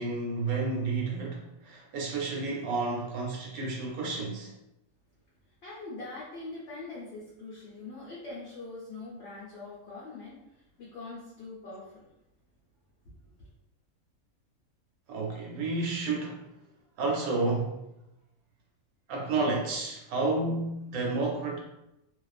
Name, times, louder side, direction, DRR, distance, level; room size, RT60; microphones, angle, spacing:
voice 1, 0.0-4.5 15.1-16.4 17.0-17.8 19.1-21.6, right 3 dB, 85° right, -1 dB, 1.1 m, -31 dB
voice 2, 5.6-12.0 13.3-13.4, left 3 dB, 55° left, -7 dB, 0.8 m, -43 dB
2.4 x 2.4 x 2.3 m, 0.87 s
omnidirectional pair, 1.5 m